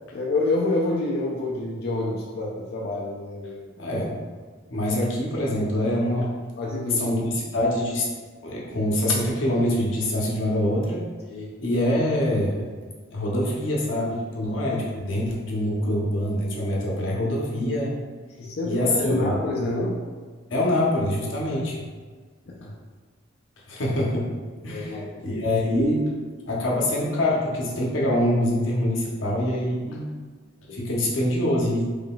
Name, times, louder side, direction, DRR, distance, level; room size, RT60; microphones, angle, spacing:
voice 1, 0.1-3.7 6.6-7.2 11.3-11.5 18.4-20.0 22.6-22.7 24.7-25.4 30.7-30.8, left 2 dB, 55° left, -3 dB, 0.4 m, -27 dB
voice 2, 3.8-4.2 4.7-6.3 6.9-8.1 8.4-11.0 11.6-12.7 13.1-17.9 18.6-19.3 20.5-21.8 23.7-24.3 24.6-26.1 26.5-30.1 30.7-31.9, left 1 dB, 90° left, -3 dB, 0.8 m, -24 dB
3.8 x 3.2 x 2.3 m, 1.5 s
head